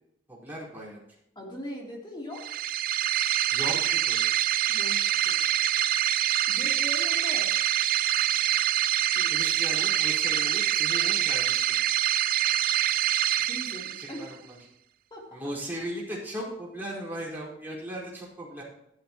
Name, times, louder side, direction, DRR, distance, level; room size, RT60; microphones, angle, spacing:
voice 1, 0.3-1.0 3.5-4.2 9.3-11.7 13.9-14.6 15.3-18.6, right 1 dB, 10° right, -6 dB, 4.9 m, -37 dB
voice 2, 1.4-2.5 4.7-5.4 6.5-7.5 9.1-9.4 13.3-14.3 15.1-15.6, left 1 dB, 25° left, -2 dB, 3.5 m, -40 dB
sound 1, 2.3-14.3, right 12 dB, 50° right, 0.4 m, -25 dB
15.0 x 12.0 x 3.1 m, 0.79 s
head